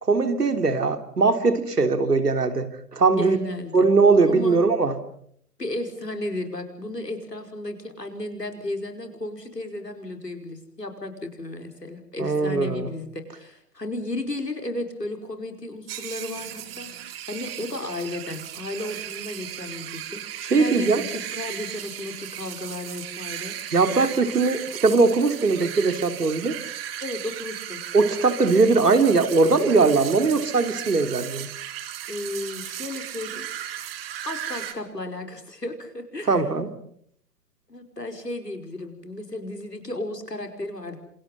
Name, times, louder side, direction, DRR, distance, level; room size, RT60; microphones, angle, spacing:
voice 1, 0.0-3.4 3.7-5.0 12.2-12.9 20.5-21.0 23.7-26.6 27.9-31.5 36.3-36.7, right 4 dB, 75° right, 8 dB, 3.4 m, -20 dB
voice 2, 3.1-3.7 4.2-4.7 5.6-23.6 23.8-24.1 27.0-27.8 32.1-33.5 34.2-36.4 37.7-41.0, left 1 dB, 90° left, 5 dB, 5.2 m, -34 dB
sound 1, 15.9-34.7, right 11 dB, 40° right, 2.8 m, -36 dB
29.0 x 27.0 x 5.5 m, 0.67 s
figure-of-eight pair, 125°, 47 cm